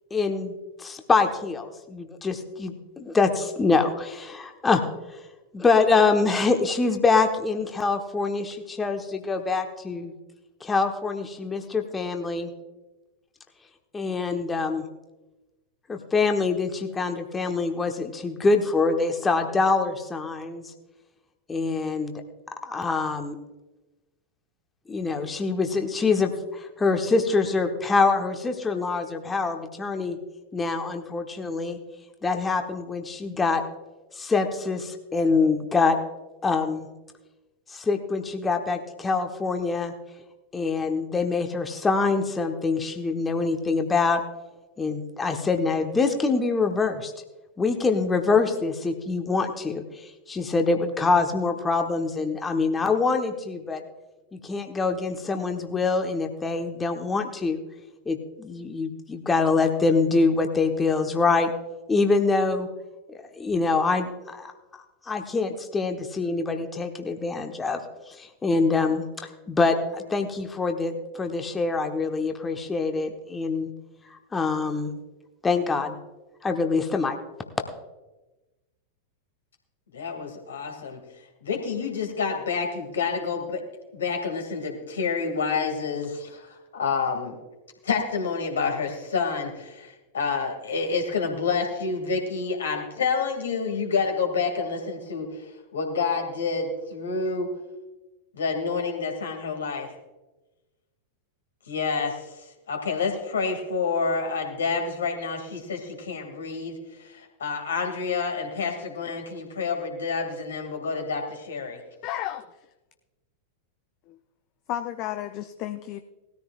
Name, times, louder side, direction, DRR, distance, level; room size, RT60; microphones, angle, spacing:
voice 1, 0.1-4.8 5.1-5.2 5.5-10.1 10.6-12.5 13.9-14.8 15.9-20.7 21.5-22.1 22.6-23.3 24.9-30.2 30.5-31.8 32.2-33.6 34.1-36.0 36.4-36.9 37.7-39.9 40.5-44.2 44.8-47.1 47.6-53.8 54.3-57.6 58.1-61.5 61.9-62.7 63.1-64.5 65.1-67.8 68.1-73.7 74.3-74.9 75.4-76.0 76.4-77.2, left 4 dB, 15° left, 5 dB, 1.1 m, -25 dB
voice 2, 79.9-81.0 81.4-83.6 83.9-87.4 87.8-95.5 95.7-97.5 98.3-99.9 101.7-102.2 102.7-111.8, left 5 dB, 65° left, 3 dB, 2.3 m, -28 dB
voice 3, 112.0-112.6 114.1-114.2 114.7-116.0, left 12 dB, 40° left, 8 dB, 0.6 m, -32 dB
19.0 x 14.0 x 2.5 m, 1.1 s
figure-of-eight pair, 90°, 0 cm